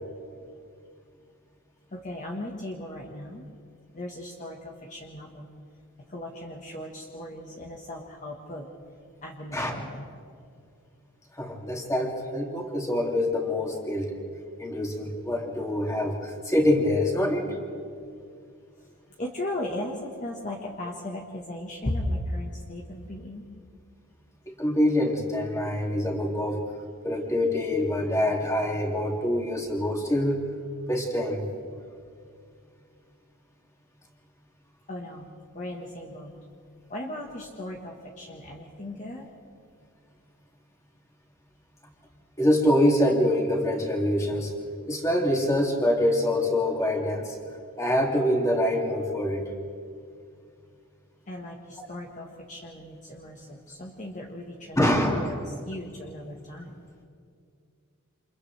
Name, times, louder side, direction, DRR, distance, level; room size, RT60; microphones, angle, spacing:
voice 1, 1.9-3.4 3.9-5.5 6.0-8.7 9.2-10.1 19.2-23.5 34.9-35.3 35.5-36.3 36.9-39.3 51.3-54.8 55.1-56.8, left 1 dB, 35° left, -1 dB, 1.6 m, -36 dB
voice 2, 11.4-14.2 14.6-17.5 24.5-26.6 27.0-30.4 30.9-31.4 42.4-44.5 44.9-47.4 47.8-49.4 54.8-55.4, left 1 dB, 15° left, 0 dB, 2.6 m, -25 dB
29.0 x 27.5 x 3.4 m, 2.3 s
head